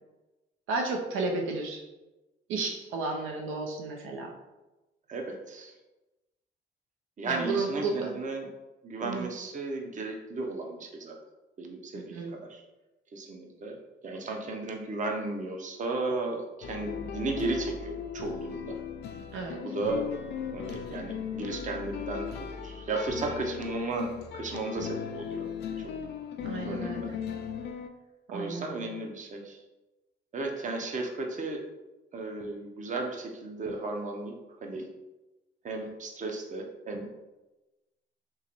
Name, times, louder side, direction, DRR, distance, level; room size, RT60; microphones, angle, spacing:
voice 1, 0.7-1.8 2.5-4.3 7.3-8.2 9.0-9.3 11.9-12.3 19.3-19.6 26.4-27.1 28.3-28.9, right 3 dB, 90° right, 1 dB, 0.6 m, -33 dB
voice 2, 5.1-5.7 7.2-8.5 8.8-11.2 11.6-12.6 13.1-18.7 19.6-20.2 20.5-25.5 26.6-27.1 28.3-29.6 30.3-31.6 32.1-34.4 34.6-34.9 35.6-37.1, right 3 dB, 40° right, 2 dB, 0.7 m, -35 dB
sound 1, 16.6-27.9, left 7 dB, 55° left, 0.4 m, -37 dB
3.7 x 2.9 x 2.9 m, 1.1 s
cardioid pair, 90°, 20 cm